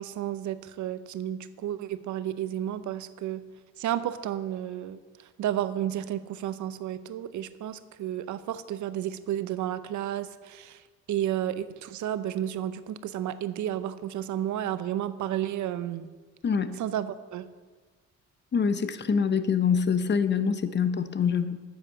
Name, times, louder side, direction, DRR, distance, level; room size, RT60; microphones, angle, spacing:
voice 1, 0.0-3.4 3.8-5.0 5.4-10.8 11.1-16.1 16.8-17.5, right 11 dB, 75° right, 13 dB, 0.7 m, -32 dB
voice 2, 16.4-16.8 18.5-21.6, left 6 dB, 35° left, 11 dB, 0.9 m, -25 dB
9.9 x 8.2 x 6.6 m, 1.4 s
cardioid pair, 90°, 30 cm